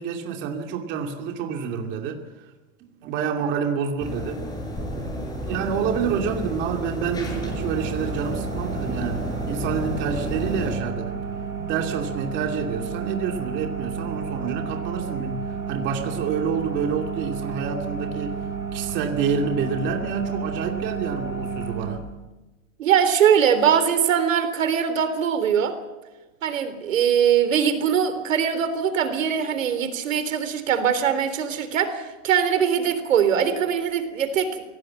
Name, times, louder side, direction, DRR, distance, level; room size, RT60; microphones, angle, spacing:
voice 1, 0.0-2.2 3.0-4.4 4.9-11.2 11.7-15.4 15.7-18.4 18.7-22.0, right 6 dB, 30° right, 3 dB, 2.6 m, -28 dB
sound 1, 4.0-10.8, equal, 10° left, 6.2 m, -31 dB
sound 2, 7.3-22.0, right 6 dB, 10° right, 4.8 m, -32 dB
voice 2, 22.8-25.8 26.4-34.6, right 8 dB, 80° right, 11 dB, 3.6 m, -22 dB
24.0 x 17.5 x 7.8 m, 1.1 s
supercardioid pair, 155°, 38 cm